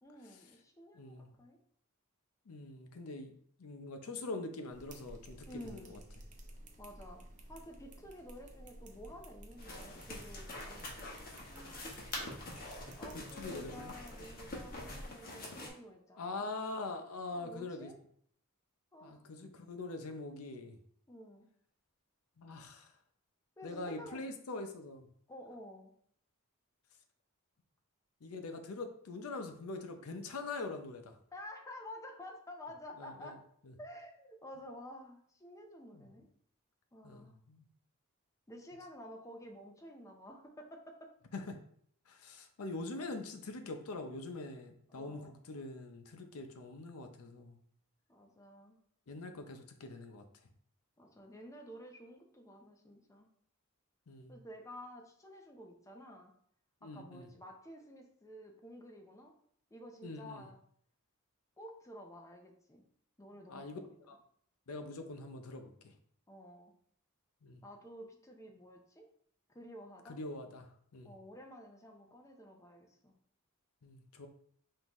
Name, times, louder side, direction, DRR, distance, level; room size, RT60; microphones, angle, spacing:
voice 1, 0.0-1.6 5.5-6.0 6.8-7.2 7.5-10.9 11.5-11.9 13.0-16.4 17.3-18.0 18.9-19.3 21.1-21.5 23.6-24.2 25.3-25.9 31.3-33.4 33.8-36.3 36.9-37.4 38.5-41.1 42.6-42.7 44.9-45.4 48.1-48.8 51.0-53.3 54.3-56.3 56.8-59.3 59.7-60.6 61.6-62.8 63.2-64.0 66.3-66.7 67.6-69.1 69.5-70.2 71.0-73.1, equal, 15° left, 2 dB, 0.6 m, -51 dB
voice 2, 0.9-1.4 2.5-3.3 3.6-6.0 13.4-13.9 16.2-17.9 19.0-20.8 22.4-22.9 23.6-25.1 28.2-31.1 33.0-33.3 33.6-33.7 35.9-36.1 37.0-37.6 41.3-41.6 42.1-47.6 49.1-50.2 54.1-54.4 56.8-57.3 60.0-60.5 63.5-63.8 64.1-64.2 64.7-65.7 67.4-67.6 70.1-70.7 70.9-71.1 73.8-74.3, left 2 dB, 80° left, 6 dB, 0.6 m, -43 dB
sound 1, 4.7-15.1, right 1 dB, 35° right, 0.6 m, -53 dB
sound 2, 9.6-15.7, left 2 dB, 45° left, 1.0 m, -46 dB
5.3 x 2.7 x 3.0 m, 0.63 s
head